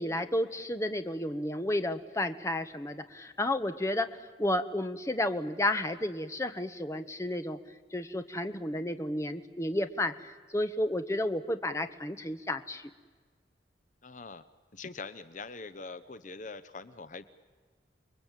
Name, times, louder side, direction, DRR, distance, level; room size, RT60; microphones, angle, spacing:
voice 1, 0.0-4.1 4.4-7.6 7.9-12.9, left 1 dB, 15° left, 9 dB, 1.1 m, -32 dB
voice 2, 14.0-14.4 14.7-17.2, left 3 dB, 45° left, 13 dB, 0.9 m, -43 dB
29.5 x 21.5 x 9.1 m, 1.4 s
head